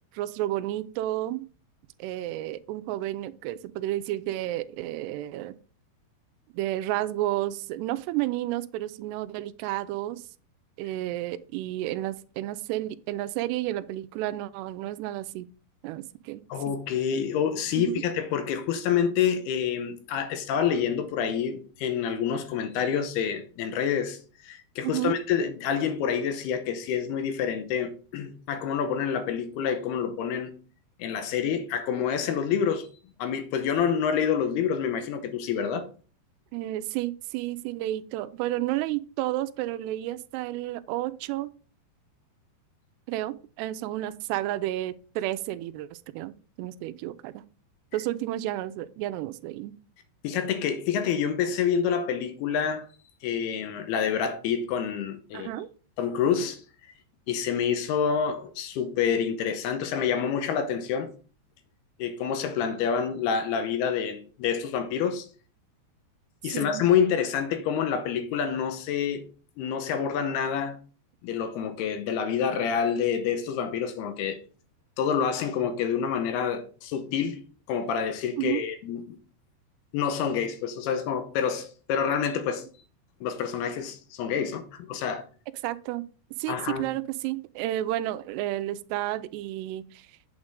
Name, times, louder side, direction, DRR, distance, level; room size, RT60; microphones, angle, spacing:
voice 1, 0.1-1.4 2.0-5.6 6.5-10.2 10.8-15.5 15.8-16.7 17.7-18.1 24.8-25.2 36.5-41.5 43.1-46.3 46.6-47.4 47.9-49.7 55.3-55.7 66.5-66.9 78.4-78.6 85.6-86.1 86.4-90.1, right 15 dB, 85° right, 2.5 m, -31 dB
voice 2, 16.5-30.5 31.0-32.9 33.2-35.9 50.2-52.9 53.2-55.5 56.0-56.6 57.3-61.1 62.0-65.3 66.4-69.3 69.6-70.8 71.2-74.4 75.0-77.4 77.7-79.2 79.9-82.7 83.2-85.2 86.5-86.8, left 7 dB, 75° left, 2.6 m, -27 dB
8.8 x 6.5 x 3.6 m
omnidirectional pair, 5.1 m